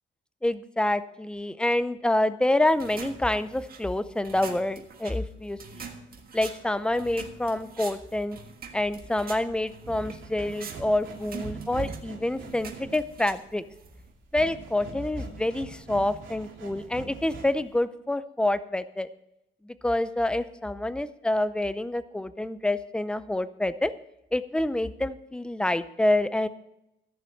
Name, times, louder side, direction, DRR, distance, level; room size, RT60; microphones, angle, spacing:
voice 1, 0.4-5.6 6.3-8.4 8.7-13.6 14.3-19.1 19.6-23.9 24.3-26.5, left 1 dB, 5° left, 13 dB, 0.5 m, -27 dB
sound 1, 2.7-14.1, right 5 dB, 50° right, 1.6 m, -45 dB
sound 2, 8.8-17.7, right 4 dB, 80° right, 2.5 m, -42 dB
14.5 x 7.2 x 6.4 m, 0.84 s
wide cardioid pair, 160°, 20 cm